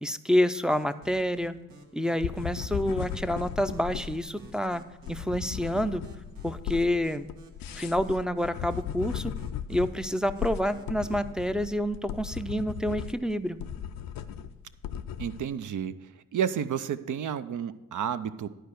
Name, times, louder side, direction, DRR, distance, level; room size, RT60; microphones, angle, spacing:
voice 1, 0.0-1.5 1.9-4.8 5.1-6.0 6.4-7.3 7.8-9.3 9.7-13.6, equal, ahead, 10 dB, 0.4 m, -28 dB
sound 1, 0.7-11.3, right 4 dB, 80° right, 1.5 m, -54 dB
sound 2, 2.2-15.5, left 8 dB, 85° left, 0.5 m, -37 dB
voice 2, 15.2-18.5, right 8 dB, 65° right, 12 dB, 0.6 m, -31 dB
10.5 x 4.6 x 6.5 m, 1.0 s
cardioid pair, 50°, 33 cm